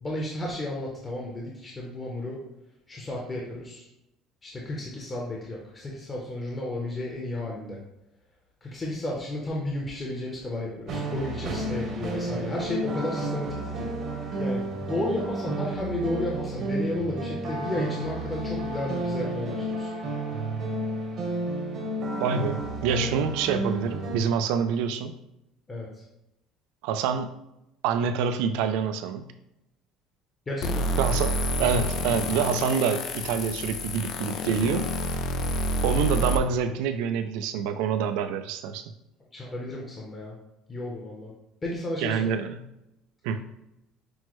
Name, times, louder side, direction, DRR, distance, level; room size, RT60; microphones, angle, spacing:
voice 1, 0.0-2.4 2.9-3.9 4.4-7.8 8.6-13.9 14.1-19.9 25.7-25.9 30.5-31.0 39.3-40.3 40.7-41.3 41.6-42.3, left 1 dB, 20° left, -3 dB, 0.7 m, -33 dB
sound 1, 10.9-24.2, right 2 dB, 50° right, 0.9 m, -31 dB
voice 2, 22.2-25.2 26.8-27.3 27.8-29.3 31.0-34.9 35.8-38.9 42.0-42.7 43.2-43.5, right 6 dB, 85° right, 9 dB, 0.3 m, -27 dB
sound 2, 30.6-36.4, equal, 60° left, 0.4 m, -28 dB
6.0 x 2.1 x 3.0 m, 0.89 s
cardioid pair, 135°, 0 cm